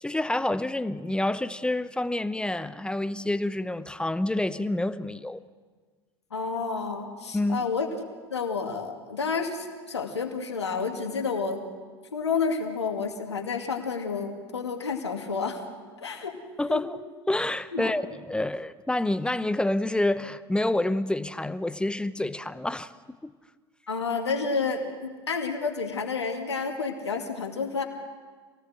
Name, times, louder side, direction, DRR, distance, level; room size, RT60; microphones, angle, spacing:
voice 1, 0.0-5.4 7.3-7.6 16.6-17.0 17.3-22.9 23.2-23.3, left 1 dB, 5° left, 0.8 m, -28 dB
voice 2, 6.3-8.0 8.3-11.6 12.1-15.6 16.0-16.4 16.7-16.8 17.7-17.9 23.9-27.8, left 5 dB, 85° left, 2.4 m, -30 dB
27.0 x 18.0 x 7.8 m
figure-of-eight pair, 75°, 14 cm